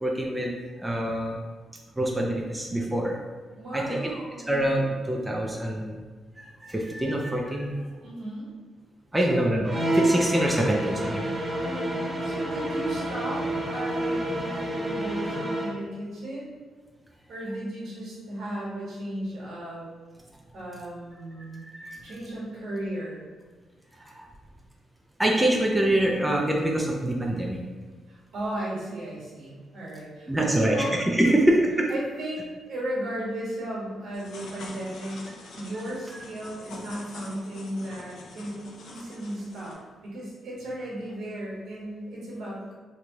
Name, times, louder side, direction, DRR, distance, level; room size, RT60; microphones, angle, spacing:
voice 1, 0.0-1.4 2.0-3.2 3.7-4.0 4.5-6.0 6.4-7.7 9.1-11.2 21.6-22.0 24.0-24.3 25.2-27.6 30.3-31.9, right 1 dB, 10° right, -1 dB, 0.3 m, -25 dB
voice 2, 3.6-4.4 8.0-8.5 9.2-9.5 11.6-16.5 17.3-19.9 20.5-21.7 22.0-23.3 28.1-30.9 31.3-31.6 31.9-35.2 35.5-39.8 40.0-42.8, right 1 dB, 70° right, -6 dB, 1.3 m, -35 dB
sound 1, 9.6-15.8, right 1 dB, 30° right, 0.7 m, -28 dB
sound 2, 34.1-39.7, left 2 dB, 70° left, 0.6 m, -45 dB
3.0 x 2.2 x 3.8 m, 1.4 s
cardioid pair, 135°, 0 cm